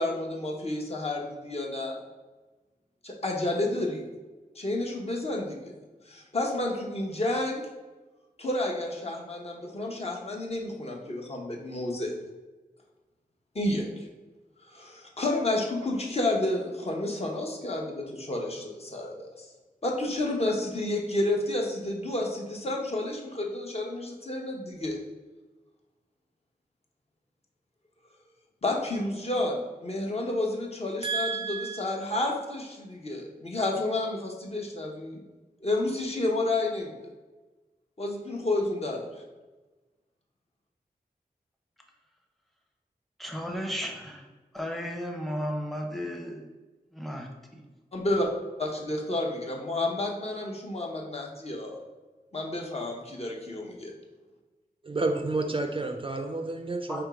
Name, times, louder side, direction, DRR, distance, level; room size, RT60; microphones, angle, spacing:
voice 1, 0.0-2.0 3.0-4.0 4.6-5.7 6.1-7.7 8.4-12.1 13.5-14.0 14.7-19.5 19.8-25.0 28.6-35.2 35.6-36.9 38.0-39.1 47.9-48.3 48.6-51.8 52.3-53.9, left 2 dB, 40° left, -1 dB, 0.9 m, -30 dB
voice 2, 31.0-31.8 54.8-57.0, right 3 dB, 35° right, 4 dB, 0.4 m, -30 dB
voice 3, 43.2-44.2 44.5-46.4 47.0-47.3, equal, ahead, 1 dB, 0.8 m, -33 dB
3.6 x 3.0 x 4.8 m, 1.2 s
wide cardioid pair, 70°, 16 cm